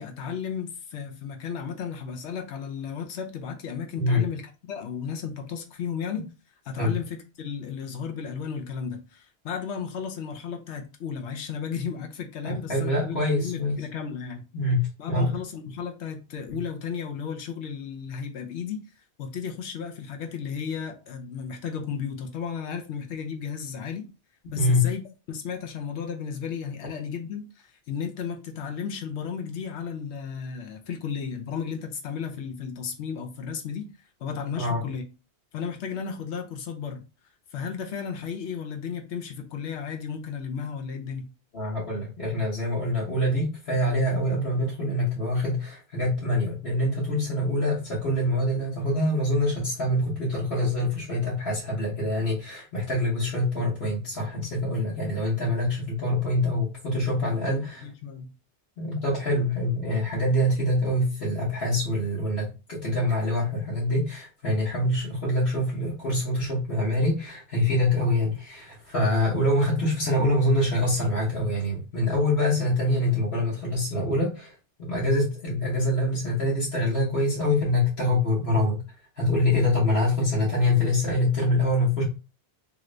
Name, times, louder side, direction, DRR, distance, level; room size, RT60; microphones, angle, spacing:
voice 1, 0.0-4.4 4.7-6.3 6.6-14.4 15.0-18.8 19.2-24.1 24.5-25.0 25.3-35.0 35.5-37.0 37.5-41.3 57.2-57.6 57.8-58.3, left 6 dB, 75° left, 0.9 m, -34 dB
voice 2, 12.4-13.7 14.5-15.4 16.5-16.6 24.5-24.9 34.6-34.8 41.5-57.8 58.8-74.5 74.8-78.8 79.2-82.0, left 1 dB, 60° left, 1.3 m, -25 dB
2.9 x 2.4 x 3.1 m
omnidirectional pair, 1.2 m